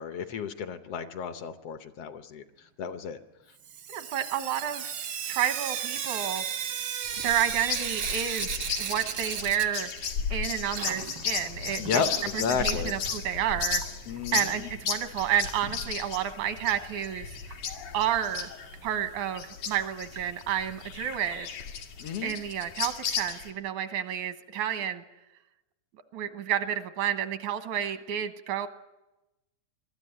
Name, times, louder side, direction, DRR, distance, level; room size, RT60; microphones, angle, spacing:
voice 1, 0.0-2.4 2.8-3.2 11.8-13.0 14.1-14.7 22.0-22.4, left 6 dB, 65° left, 9 dB, 1.6 m, -32 dB
Sink (filling or washing) / Drip, 3.6-10.4 10.6-12.6 13.8-13.9 14.2-14.3 14.5-14.6 17.5-17.6 18.1-18.2 18.7-18.8 19.4-19.5 20.2-20.3 21.1-21.2, right 8 dB, 70° right, 1.1 m, -35 dB
voice 2, 3.9-4.9 5.2-6.4 7.2-9.9 10.3-12.0 12.3-13.8 14.3-17.4 17.9-18.5 18.8-21.5 22.2-25.0 26.1-28.7, right 10 dB, 85° right, 9 dB, 2.5 m, -30 dB
sound 1, 7.1-23.5, left 6 dB, 85° left, 3.5 m, -35 dB
22.0 x 13.5 x 9.9 m, 1.0 s
omnidirectional pair, 3.3 m